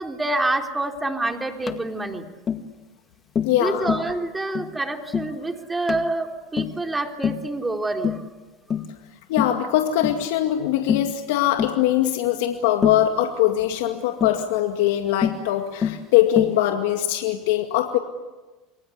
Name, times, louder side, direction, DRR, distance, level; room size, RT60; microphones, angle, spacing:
voice 1, 0.0-2.3 3.5-8.2, right 2 dB, 15° right, 4 dB, 3.6 m, -27 dB
Tap, 1.7-1.8 2.5-2.7 3.3-3.6 3.9-4.1 4.5-4.7 5.1-5.3 5.9-6.1 6.6-6.8 7.2-7.5 8.0-8.3 8.7-8.9 9.4-9.6 10.0-10.2 10.9-11.1 11.6-11.8 12.8-13.1 14.2-14.4 15.2-15.4 15.8-16.0 16.4-16.6, left 7 dB, 35° left, 2.0 m, -25 dB
voice 2, 3.4-3.9 4.5-4.6 9.3-18.0, left 12 dB, 75° left, 5 dB, 2.2 m, -22 dB
29.0 x 23.0 x 8.4 m, 1.2 s
hypercardioid pair, 85°, 0 cm